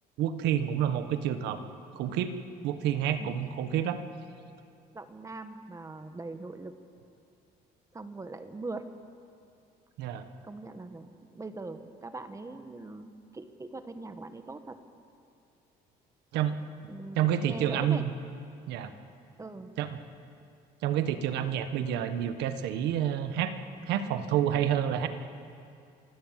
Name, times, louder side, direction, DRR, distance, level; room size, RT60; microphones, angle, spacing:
voice 1, 0.2-1.6 1.9-2.3 2.6-4.0 10.0-10.3 16.3-16.5 17.1-18.1 18.7-18.9 19.8-20.0 20.8-23.5 23.9-25.1, right 10 dB, 90° right, 9 dB, 1.4 m, -28 dB
voice 2, 4.9-6.7 7.9-8.9 10.4-14.8 16.9-18.1 19.4-19.7, right 3 dB, 20° right, 8 dB, 1.4 m, -41 dB
27.5 x 17.0 x 7.5 m, 2.5 s
cardioid pair, 110°, 17 cm